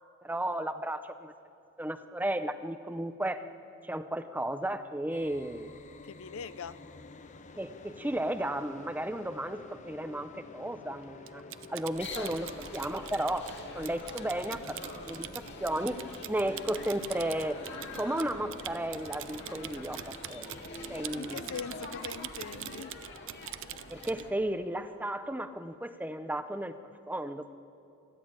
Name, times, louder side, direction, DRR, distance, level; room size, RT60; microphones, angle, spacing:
voice 1, 0.2-1.3 1.8-3.4 3.8-5.7 7.6-11.4 11.7-13.5 13.7-14.8 15.0-16.0 16.3-17.6 18.0-20.5 20.9-21.4 23.9-26.8 27.1-27.6, right 1 dB, 10° right, 10 dB, 0.6 m, -34 dB
sound 1, 5.1-22.1, left 2 dB, 35° left, 0.8 m, -50 dB
voice 2, 6.0-6.8 12.1-12.6 21.2-23.0, left 6 dB, 65° left, 15 dB, 0.5 m, -42 dB
Typing, 11.3-24.3, right 12 dB, 60° right, 0.5 m, -44 dB
sound 2, 11.9-24.3, left 2 dB, 50° left, 2.2 m, -45 dB
27.0 x 10.5 x 8.9 m, 2.7 s
head